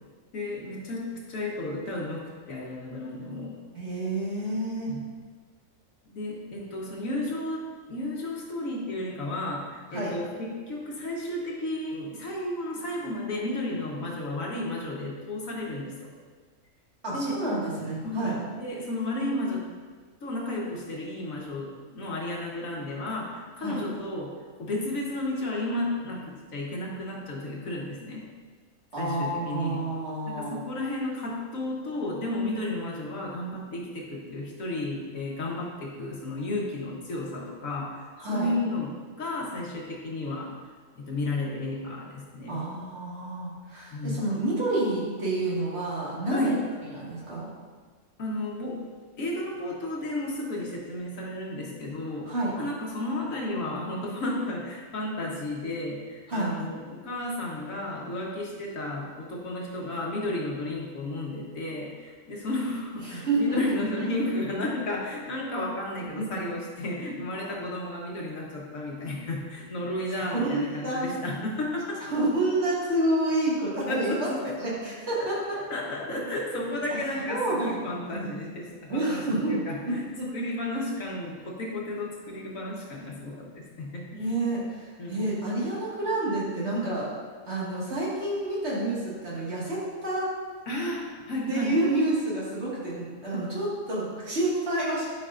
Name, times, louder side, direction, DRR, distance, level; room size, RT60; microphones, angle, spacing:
voice 1, 0.3-3.6 4.9-5.0 6.1-7.6 7.9-16.1 17.1-17.4 18.0-19.7 20.2-24.3 24.6-28.3 29.0-29.8 30.3-38.9 39.2-40.5 40.9-42.6 43.9-44.2 46.2-46.6 48.2-48.8 49.2-72.0 73.9-74.5 75.2-75.3 75.5-79.2 79.5-80.1 80.3-84.2 85.0-85.3 90.7-91.7, left 1 dB, 75° left, -2 dB, 1.6 m, -33 dB
voice 2, 3.7-4.9 9.9-10.1 17.0-18.4 23.6-23.8 28.9-30.6 38.2-38.5 42.5-46.5 46.9-47.5 52.3-52.5 56.3-56.5 63.0-63.6 66.2-66.3 70.2-71.1 72.0-74.3 74.6-75.6 76.9-77.0 77.3-77.8 78.1-78.3 78.9-80.3 84.1-87.1 87.5-90.3 91.5-95.1, right 1 dB, 55° right, -7 dB, 2.1 m, -29 dB
10.5 x 5.2 x 2.5 m, 1.5 s
omnidirectional pair, 1.4 m